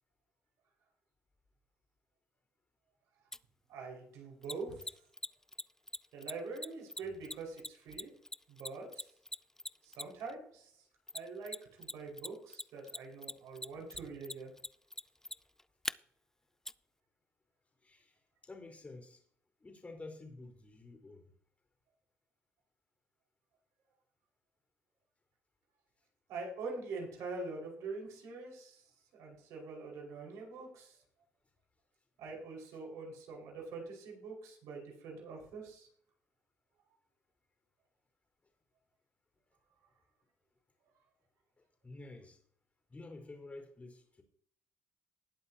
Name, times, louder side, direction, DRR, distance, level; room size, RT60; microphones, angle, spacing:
Mechanisms, 3.3-3.4 4.4-10.3 11.1-11.9 12.2-15.9 16.7-16.8, left 1 dB, 10° left, 0.4 m, -41 dB
voice 1, 3.7-4.9 6.1-8.1 8.5-9.1 9.8-10.7 11.1-14.5 26.3-28.8 29.1-31.0 32.2-35.9, right 3 dB, 80° right, 5.3 m, -44 dB
voice 2, 17.8-19.2 19.6-21.3 41.6-42.4 42.9-44.2, left 2 dB, 25° left, 4.5 m, -50 dB
19.5 x 7.9 x 2.9 m
supercardioid pair, 75°, 5 cm